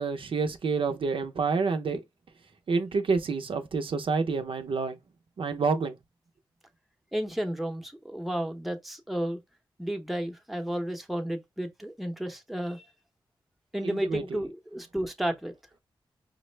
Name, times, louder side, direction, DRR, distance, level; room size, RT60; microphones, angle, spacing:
voice 1, 0.0-2.0 2.7-5.0 5.4-6.0 13.8-14.4, right 4 dB, 65° right, 0.6 m, -28 dB
voice 2, 7.1-9.4 9.8-12.9 13.7-15.5, right 1 dB, ahead, 0.8 m, -32 dB
5.1 x 2.0 x 3.2 m
cardioid pair, 65°, 10 cm